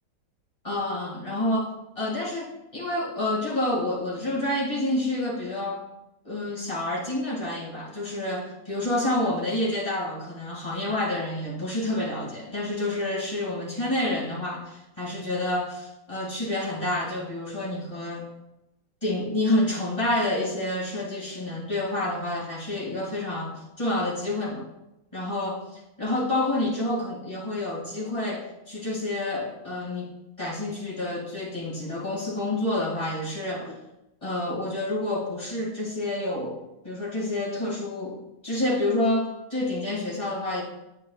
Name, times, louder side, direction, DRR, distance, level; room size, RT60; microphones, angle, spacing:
voice 1, 0.6-5.8 6.2-18.3 19.0-24.6 25.1-30.1 30.4-33.8 34.2-36.6 36.8-40.6, left 1 dB, 15° left, -5 dB, 2.2 m, -28 dB
8.3 x 8.1 x 2.4 m, 0.91 s
omnidirectional pair, 2.1 m